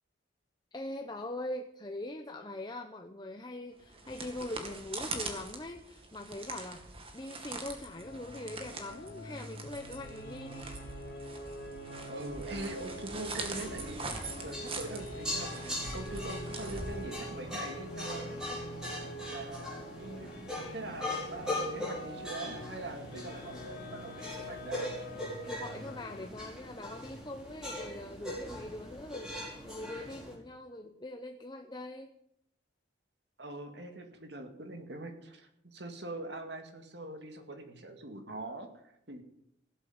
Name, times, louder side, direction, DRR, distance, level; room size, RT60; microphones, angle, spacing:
voice 1, 0.7-6.9 7.1-10.7 25.5-32.1, left 1 dB, 20° left, 4 dB, 0.8 m, -42 dB
sound 1, 3.8-17.5, right 3 dB, 30° right, 2.1 m, -43 dB
sound 2, 7.9-26.3, equal, 50° left, 2.5 m, -45 dB
voice 2, 12.1-18.4 19.3-24.9 33.4-39.2, right 2 dB, 60° right, 5 dB, 2.1 m, -43 dB
sound 3, 13.2-30.3, left 1 dB, ahead, 4.9 m, -41 dB
16.5 x 8.0 x 8.0 m, 0.77 s
head